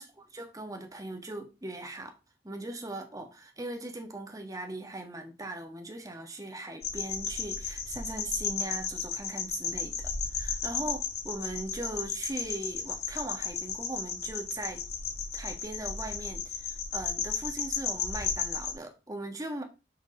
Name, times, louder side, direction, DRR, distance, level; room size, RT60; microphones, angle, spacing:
voice 1, 0.3-2.1 2.4-9.9 10.3-14.8 15.3-19.6, right 2 dB, 20° right, 1.4 m, -39 dB
sound 1, 6.8-18.7, left 6 dB, 60° left, 1.6 m, -34 dB
6.7 x 4.6 x 5.4 m
head